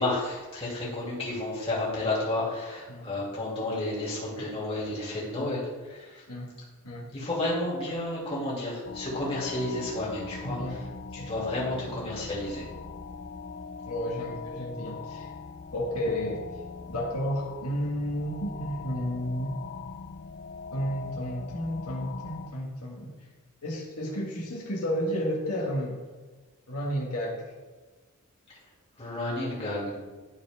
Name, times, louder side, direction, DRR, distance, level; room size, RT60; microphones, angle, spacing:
voice 1, 0.0-6.2 7.1-10.6 11.1-12.7 29.0-30.0, left 2 dB, 25° left, -7 dB, 2.8 m, -31 dB
sound 1, 8.8-22.5, left 4 dB, 45° left, 0.5 m, -41 dB
voice 2, 10.4-10.8 11.2-11.5 13.8-15.3 15.7-16.6 16.9-19.6 20.7-23.2 23.6-26.0 26.7-27.4, equal, 85° left, -3 dB, 1.8 m, -32 dB
12.5 x 4.7 x 3.6 m, 1.3 s
head